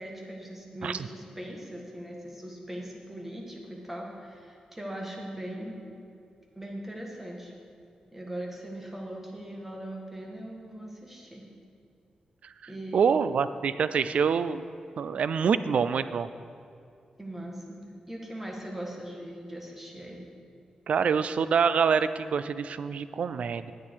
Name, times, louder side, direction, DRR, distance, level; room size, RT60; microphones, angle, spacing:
voice 1, 0.0-5.7 6.5-7.5 8.1-11.4 12.7-13.1 17.2-20.2, right 1 dB, 10° right, -1 dB, 1.6 m, -40 dB
voice 2, 12.9-14.6 15.0-16.3 20.9-23.7, right 6 dB, 65° right, 13 dB, 0.4 m, -26 dB
9.8 x 9.0 x 4.6 m, 2.5 s
wide cardioid pair, 110°, 2 cm